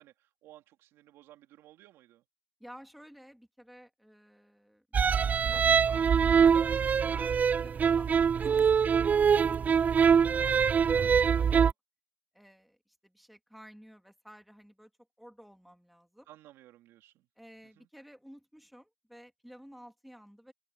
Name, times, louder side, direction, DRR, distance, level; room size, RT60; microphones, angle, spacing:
voice 1, 0.0-2.2 11.3-11.7 16.3-17.3 17.7-17.9, right 14 dB, 75° right, 3.2 m, -56 dB
voice 2, 2.6-5.0 5.4-6.7 7.0-11.7 12.3-14.9 15.2-16.3 17.4-20.5, equal, ahead, 3.1 m, -54 dB
sound 1, 4.9-11.7, right 7 dB, 35° right, 0.4 m, -24 dB
supercardioid pair, 80°, 4 cm